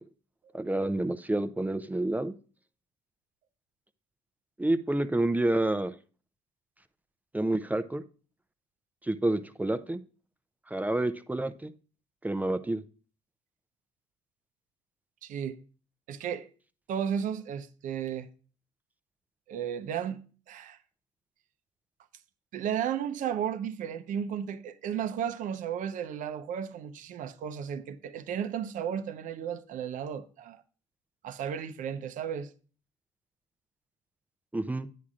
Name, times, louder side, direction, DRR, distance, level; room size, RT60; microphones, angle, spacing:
voice 1, 0.5-2.3 4.6-5.9 7.3-8.0 9.0-10.0 10.7-11.7 12.2-12.8 34.5-34.9, right 1 dB, 10° right, 0.5 m, -28 dB
voice 2, 15.2-15.6 16.1-16.5 16.9-18.3 19.5-20.2 20.5-20.8 22.5-30.6 31.2-32.5, right 8 dB, 60° right, 0.7 m, -34 dB
10.0 x 8.3 x 2.5 m
hypercardioid pair, 60°, 15 cm